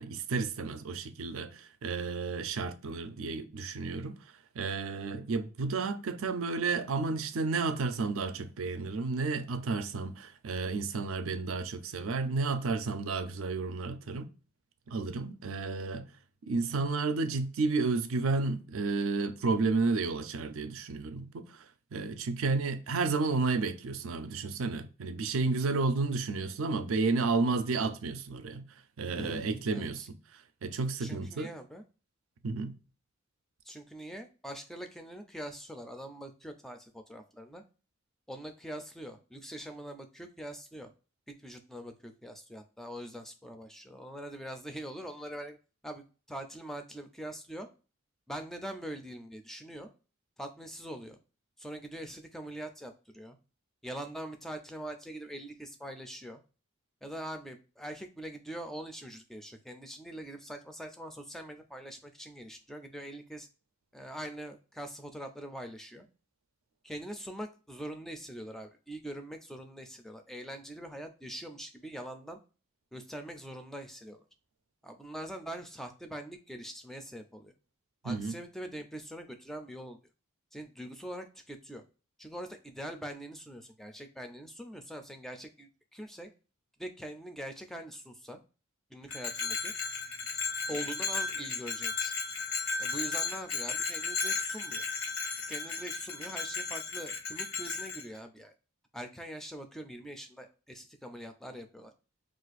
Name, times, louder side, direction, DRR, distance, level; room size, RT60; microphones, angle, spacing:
voice 1, 0.0-4.2 4.5-14.3 14.9-16.1 16.5-21.6 21.9-28.7 29.0-30.0 30.3-31.5 32.4-32.8 78.0-78.4, right 3 dB, 85° right, 0.4 m, -32 dB
voice 2, 29.1-30.1 31.0-31.8 33.6-37.6 38.3-40.9 41.4-45.6 45.8-47.7 48.3-49.9 50.4-51.2 51.6-53.4 53.8-56.4 57.0-63.5 63.9-66.1 66.8-72.4 72.9-74.2 74.8-77.5 78.0-80.0 80.5-81.8 82.2-86.3 86.8-88.4 88.9-89.7 90.7-92.1 92.8-94.8 95.5-98.5 98.9-101.9, right 1 dB, ahead, 0.3 m, -43 dB
Bell, 89.1-98.0, left 4 dB, 85° left, 0.9 m, -34 dB
2.5 x 2.4 x 4.0 m
head